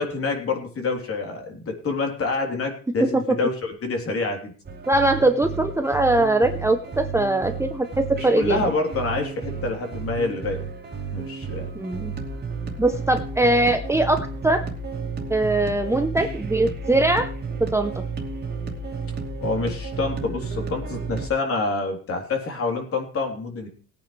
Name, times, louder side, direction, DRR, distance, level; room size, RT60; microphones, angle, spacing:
voice 1, 0.0-4.5 8.2-10.6 11.1-11.7 19.4-23.7, left 3 dB, 45° left, 2 dB, 3.7 m, -27 dB
voice 2, 3.0-3.4 4.9-8.7 11.7-12.1 12.8-14.6 15.3-17.3 17.6-18.0, right 2 dB, 10° right, 6 dB, 0.8 m, -21 dB
sound 1, 4.6-21.3, right 4 dB, 30° right, 2.7 m, -32 dB
19.5 x 9.3 x 3.3 m, 0.41 s
cardioid pair, 120°, 33 cm